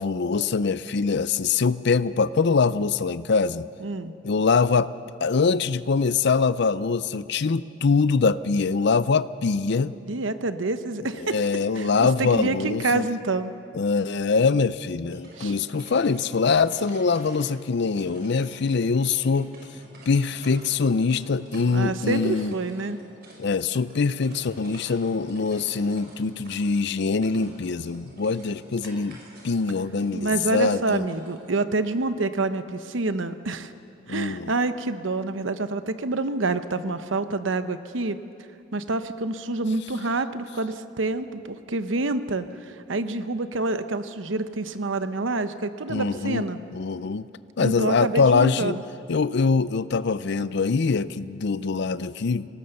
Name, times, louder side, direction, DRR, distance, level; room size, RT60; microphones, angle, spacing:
voice 1, 0.0-3.7 4.2-4.9 5.2-9.9 11.2-13.0 13.7-19.5 20.1-22.5 23.4-29.2 29.4-31.1 34.1-34.5 45.9-46.5 46.7-47.3 47.6-48.8 49.1-52.5, left 4 dB, 60° left, 16 dB, 0.5 m, -23 dB
voice 2, 3.8-4.1 10.0-11.4 11.8-13.5 15.4-15.5 21.7-23.0 30.1-33.7 34.1-38.2 38.7-46.6 47.6-48.8, right 2 dB, 75° right, 11 dB, 0.9 m, -27 dB
sound 1, 14.9-31.9, right 1 dB, 55° right, 5.6 m, -49 dB
25.0 x 18.0 x 6.7 m, 2.7 s
head